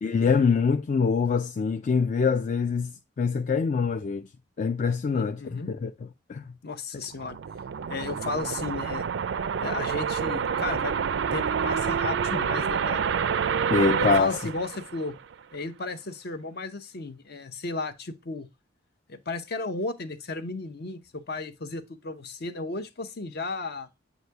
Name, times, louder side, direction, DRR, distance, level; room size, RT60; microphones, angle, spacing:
voice 1, 0.0-4.3 4.6-5.9 6.3-6.4 13.7-14.4, left 5 dB, 40° left, 0.3 m, -24 dB
voice 2, 5.1-5.7 6.6-7.4 7.9-9.1 9.6-13.1 14.0-15.2 15.5-18.5 19.1-23.9, left 3 dB, 60° left, 0.7 m, -34 dB
sound 1, 7.0-15.3, right 7 dB, 70° right, 0.4 m, -28 dB
8.0 x 2.7 x 4.5 m
head